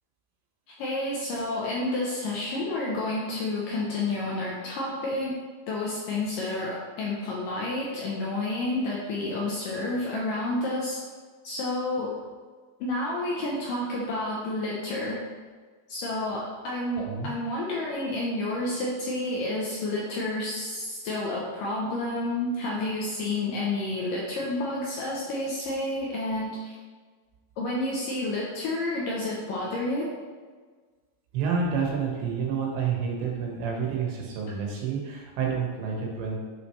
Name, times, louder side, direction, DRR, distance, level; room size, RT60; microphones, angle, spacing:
voice 1, 0.7-5.4 5.7-11.0 11.4-12.2 12.8-15.2 15.9-26.7 27.6-30.1, left 2 dB, 75° left, -4 dB, 2.1 m, -30 dB
voice 2, 31.3-36.4, right 6 dB, 85° right, -1 dB, 3.6 m, -29 dB
9.0 x 6.3 x 3.2 m, 1.5 s
omnidirectional pair, 4.9 m